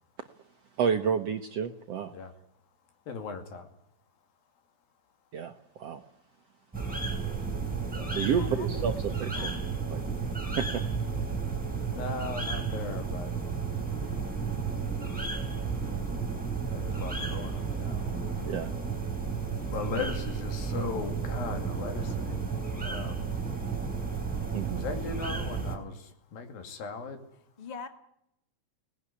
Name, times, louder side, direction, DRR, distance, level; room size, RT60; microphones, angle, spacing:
voice 1, 0.8-2.1 5.3-6.0 8.1-9.5 9.9-10.0 10.6-10.8 18.5-18.7 24.5-24.8, right 7 dB, 70° right, 6 dB, 1.6 m, -30 dB
voice 2, 3.1-3.7 7.9-8.3 11.9-13.3 16.7-18.0 19.7-22.4 22.8-23.3 24.7-25.9 26.3-27.2, left 5 dB, 80° left, 6 dB, 4.2 m, -37 dB
sound 1, 6.7-25.8, right 5 dB, ahead, 3.7 m, -32 dB
voice 3, 8.4-9.7 27.6-27.9, left 4 dB, 30° left, 7 dB, 0.7 m, -43 dB
24.0 x 19.0 x 9.9 m, 0.83 s
omnidirectional pair, 4.1 m